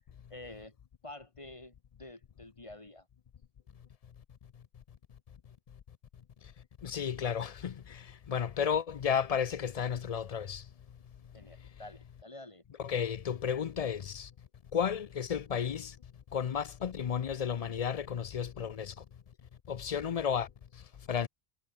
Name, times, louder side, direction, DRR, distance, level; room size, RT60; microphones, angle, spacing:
voice 1, 0.3-0.7 1.0-3.1 11.3-12.6, left 2 dB, 30° left, 2.2 m, -49 dB
voice 2, 6.8-10.6 12.8-14.3 14.7-16.0 16.3-19.0 19.7-20.5 21.1-21.3, left 7 dB, 50° left, 0.5 m, -33 dB
omnidirectional pair, 1.1 m